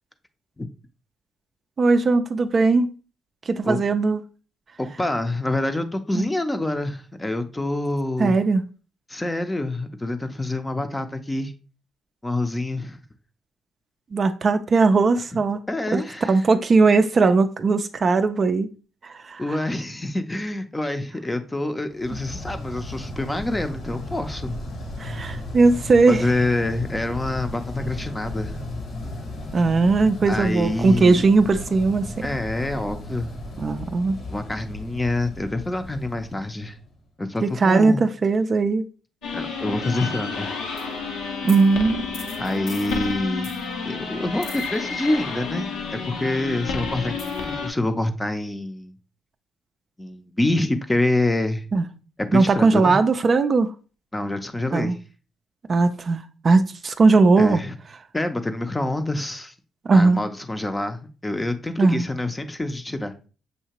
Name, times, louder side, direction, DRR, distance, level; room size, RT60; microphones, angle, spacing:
voice 1, 1.8-2.9 3.5-4.2 6.1-6.3 8.2-8.6 14.1-15.6 15.9-18.7 19.0-19.6 25.0-26.3 29.5-32.3 33.6-34.2 37.4-38.8 41.4-42.1 51.7-51.8 52.3-53.7 54.7-54.9 55.7-57.6 59.9-60.3 61.8-62.1, right 3 dB, 40° right, 0.4 m, -19 dB
voice 2, 4.8-8.4 9.1-11.5 12.2-13.0 15.3-15.4 15.7-16.4 19.4-24.5 26.1-28.6 30.3-31.3 32.2-33.3 34.3-36.8 37.2-38.0 39.3-40.5 42.4-43.5 43.8-48.9 50.0-51.7 52.3-53.0 54.1-55.0 57.4-57.8 58.1-59.5 59.9-63.1, left 2 dB, 15° left, 0.6 m, -26 dB
sound 1, 22.0-37.0, left 1 dB, 55° left, 1.0 m, -35 dB
sound 2, 39.2-47.7, left 5 dB, 85° left, 0.8 m, -30 dB
6.5 x 2.8 x 2.9 m
cardioid pair, 90°, 0 cm